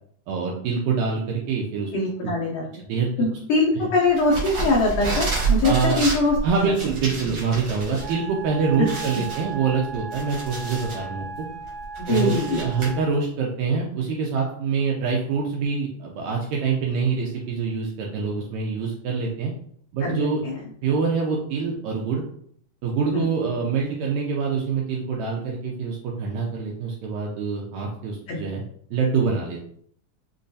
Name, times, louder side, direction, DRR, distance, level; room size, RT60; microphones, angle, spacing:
voice 1, 0.3-1.9 2.2-2.3 2.9-3.1 5.6-6.0 6.4-11.5 12.1-19.5 19.9-20.4 20.8-22.2 22.8-28.6 28.9-29.6, right 5 dB, 80° right, -1 dB, 1.7 m, -25 dB
voice 2, 1.9-2.6 3.2-6.4 8.8-8.9 12.0-12.6 20.0-20.6 23.1-23.3 28.3-28.4, left 2 dB, 90° left, -3 dB, 1.4 m, -22 dB
sound 1, 4.2-8.1 8.5-8.6 8.9-11.0 11.5-12.9, right 4 dB, 60° right, 1.3 m, -29 dB
Wind instrument woodwind instrument, 8.0-13.2, right 6 dB, 65° left, 1.8 m, -36 dB
5.1 x 2.3 x 2.6 m, 0.64 s
omnidirectional pair, 3.6 m